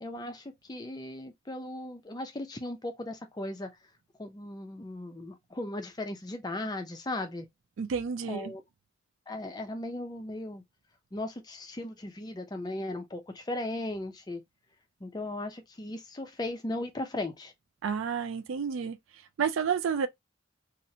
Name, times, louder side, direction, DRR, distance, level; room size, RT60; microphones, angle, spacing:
voice 1, 0.0-3.7 4.2-7.5 8.3-8.6 9.3-10.6 11.1-14.4 15.0-17.5, left 1 dB, 20° left, 0.4 m, -37 dB
voice 2, 7.8-8.5 17.8-19.0 19.4-20.1, right 6 dB, 80° right, 0.4 m, -30 dB
2.8 x 2.1 x 2.6 m
head